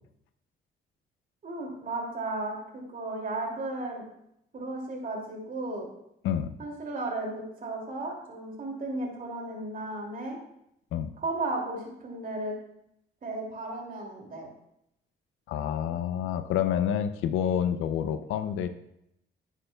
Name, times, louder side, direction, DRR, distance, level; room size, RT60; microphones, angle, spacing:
voice 1, 1.4-4.0 4.5-5.9 6.6-10.4 11.2-12.6 13.2-14.5, right 2 dB, 45° right, 0 dB, 2.6 m, -34 dB
voice 2, 15.5-18.7, left 9 dB, 90° left, 10 dB, 0.5 m, -28 dB
11.0 x 8.2 x 2.3 m, 0.79 s
cardioid pair, 90°, 20 cm